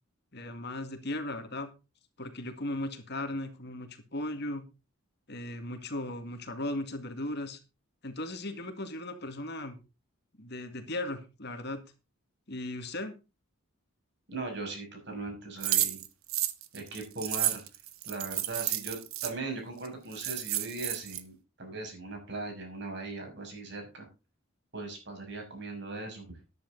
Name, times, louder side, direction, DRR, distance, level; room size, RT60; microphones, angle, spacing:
voice 1, 0.3-1.7 2.2-4.7 5.3-7.6 8.0-9.8 10.4-11.9 12.5-13.1, left 1 dB, 50° left, 7 dB, 2.0 m, -37 dB
voice 2, 14.3-16.0 16.7-17.6 18.0-24.1 24.7-26.3, right 3 dB, 55° right, 4 dB, 6.2 m, -39 dB
sound 1, 15.6-19.3 19.8-19.9 20.1-21.2, right 13 dB, 80° right, 1.2 m, -31 dB
13.5 x 10.5 x 4.0 m, 0.30 s
head